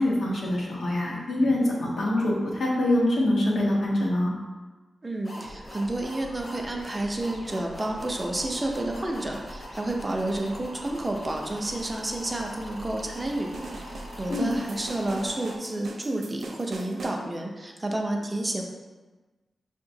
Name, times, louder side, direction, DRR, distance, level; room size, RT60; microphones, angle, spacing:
voice 1, 0.0-4.3 14.3-14.5, left 1 dB, 80° left, -4 dB, 1.0 m, -24 dB
voice 2, 5.0-18.6, right 1 dB, 20° right, 1 dB, 0.4 m, -30 dB
sound 1, 5.2-15.6, equal, 35° left, 0.9 m, -41 dB
sound 2, 13.5-17.2, right 3 dB, 85° right, 0.4 m, -41 dB
5.3 x 2.8 x 2.6 m, 1.2 s
wide cardioid pair, 145°, 0 cm